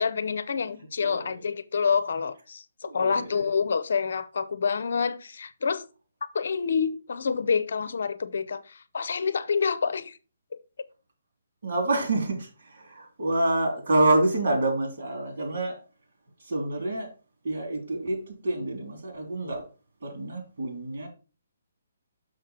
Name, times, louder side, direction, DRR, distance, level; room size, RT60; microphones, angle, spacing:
voice 1, 0.0-5.8 6.3-10.2 10.5-10.6, left 5 dB, 60° left, 0.7 m, -27 dB
voice 2, 1.0-1.5 2.8-3.4 11.6-15.8 16.4-17.1 17.4-19.7 20.0-21.1, right 2 dB, 60° right, 3.3 m, -27 dB
6.5 x 6.0 x 4.3 m
figure-of-eight pair, 135°, 0 cm